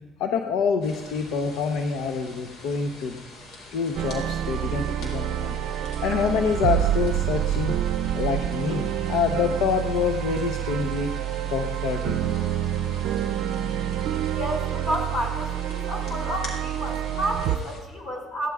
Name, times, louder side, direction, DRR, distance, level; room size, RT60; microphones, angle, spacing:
voice 1, 0.2-3.2 3.7-7.7 8.1-11.1 11.5-12.3, left 6 dB, 85° left, 4 dB, 0.8 m, -26 dB
sound 1, 0.8-17.8, left 2 dB, 65° left, 3.9 m, -45 dB
sound 2, 4.0-17.6, right 11 dB, 75° right, 0.5 m, -27 dB
voice 2, 14.3-18.5, equal, 45° left, 1 dB, 5.1 m, -31 dB
22.5 x 16.0 x 2.4 m, 1.2 s
cardioid pair, 100°, 0 cm